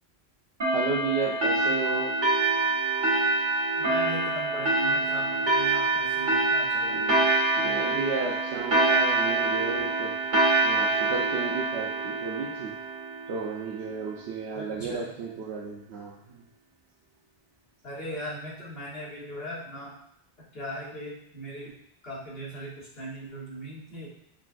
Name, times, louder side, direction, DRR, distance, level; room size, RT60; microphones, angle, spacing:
sound 1, 0.6-13.7, right 2 dB, 50° right, 1.3 m, -25 dB
voice 1, 0.7-2.2 6.9-7.0 7.6-10.1 10.6-12.7 13.3-16.4, right 4 dB, 90° right, -4 dB, 0.9 m, -33 dB
voice 2, 3.8-7.3 14.5-15.1 17.8-20.0 20.5-21.7 22.0-24.1, equal, 70° left, -7 dB, 1.6 m, -39 dB
5.6 x 2.2 x 2.4 m, 0.77 s
omnidirectional pair, 1.1 m